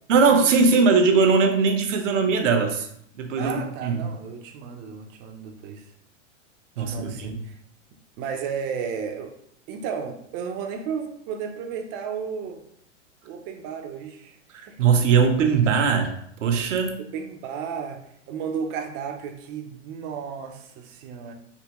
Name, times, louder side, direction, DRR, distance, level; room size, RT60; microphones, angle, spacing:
voice 1, 0.1-2.9 3.2-4.0 6.8-7.3 14.5-16.1 16.4-17.0, right 5 dB, 80° right, 4 dB, 0.7 m, -20 dB
voice 2, 3.4-5.8 6.8-7.6 8.2-9.3 9.7-12.6 13.2-14.8 17.0-21.3, right 6 dB, 30° right, 5 dB, 0.4 m, -33 dB
3.5 x 2.7 x 2.9 m, 0.71 s
hypercardioid pair, 110°, 37 cm